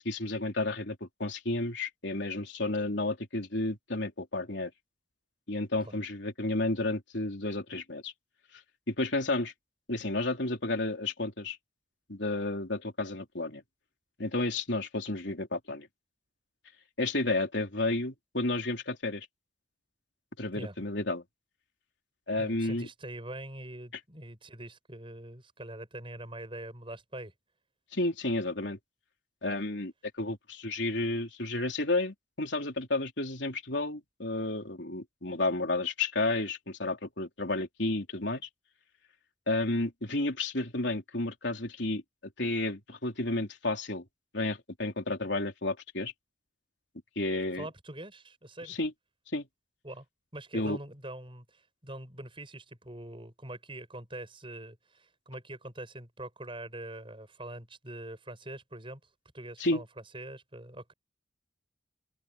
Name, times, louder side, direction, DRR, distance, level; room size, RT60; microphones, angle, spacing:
voice 1, 0.0-4.7 5.5-8.1 8.9-9.5 9.9-11.6 12.1-13.6 14.2-15.9 17.0-19.3 20.4-21.2 22.3-22.9 27.9-28.8 29.4-38.4 39.5-42.0 42.4-44.0 44.3-46.1 47.2-47.7 48.7-48.9 49.3-49.5 50.5-50.8 59.6-59.8, left 2 dB, 60° left, 3.7 m, -31 dB
voice 2, 22.4-27.3 47.5-48.8 49.8-50.1 50.3-59.0 59.3-59.9 60.1-60.9, right 1 dB, 25° right, 7.6 m, -43 dB
head